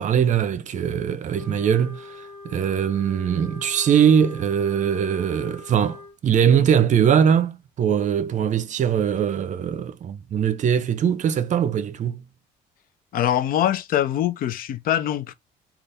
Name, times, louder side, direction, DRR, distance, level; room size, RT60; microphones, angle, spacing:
voice 1, 0.0-12.2, right 8 dB, 45° right, 0.6 m, -21 dB
Wind instrument woodwind instrument, 1.3-6.2, left 3 dB, 10° right, 2.1 m, -42 dB
voice 2, 13.1-15.3, left 11 dB, 60° left, 0.5 m, -23 dB
3.9 x 2.4 x 3.4 m
cardioid pair, 110°, 17 cm